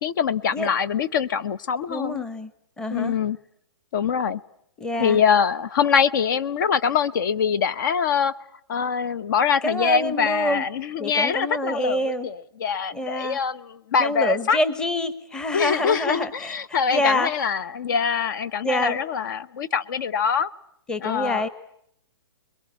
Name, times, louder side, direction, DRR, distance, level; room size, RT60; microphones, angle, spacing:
voice 1, 0.0-2.2 2.9-3.4 3.9-4.4 5.0-8.4 8.7-12.3 12.6-14.6 15.5-20.5 21.0-21.5, left 7 dB, 50° left, 17 dB, 1.1 m, -24 dB
voice 2, 1.9-2.5 2.8-3.2 4.8-5.2 9.6-10.7 11.0-12.3 12.9-13.4 14.0-17.3 18.6-19.0 20.9-21.5, left 1 dB, 5° left, 14 dB, 1.0 m, -26 dB
26.0 x 22.5 x 8.4 m, 0.71 s
hypercardioid pair, 160°, 14 cm